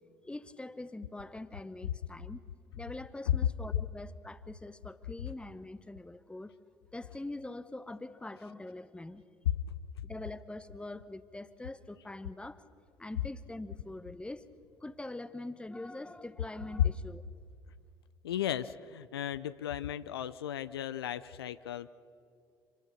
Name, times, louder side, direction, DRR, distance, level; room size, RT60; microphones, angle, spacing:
voice 1, 0.2-2.4 2.8-6.5 6.9-9.2 10.0-12.6 13.0-14.5 14.8-17.2, left 2 dB, 10° left, 14 dB, 1.0 m, -43 dB
voice 2, 18.2-21.9, left 10 dB, 80° left, 14 dB, 0.5 m, -36 dB
26.5 x 19.5 x 6.6 m, 2.4 s
figure-of-eight pair, 60°, 13 cm